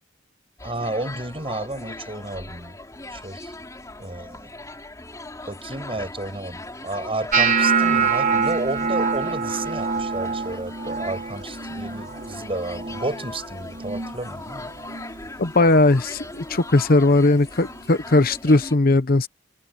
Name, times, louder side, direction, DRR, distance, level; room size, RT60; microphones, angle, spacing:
sound 1, 0.6-18.8, left 2 dB, 20° left, 4.1 m, -39 dB
voice 1, 0.6-2.8 3.1-3.5 4.0-4.5 5.5-14.7, right 2 dB, 30° right, 8.0 m, -31 dB
sound 2, 7.3-13.4 13.7-14.2 14.6-15.1 15.7-15.9 17.7-17.8, right 5 dB, 45° right, 2.8 m, -25 dB
voice 2, 15.4-19.3, left 2 dB, 55° left, 0.9 m, -18 dB
head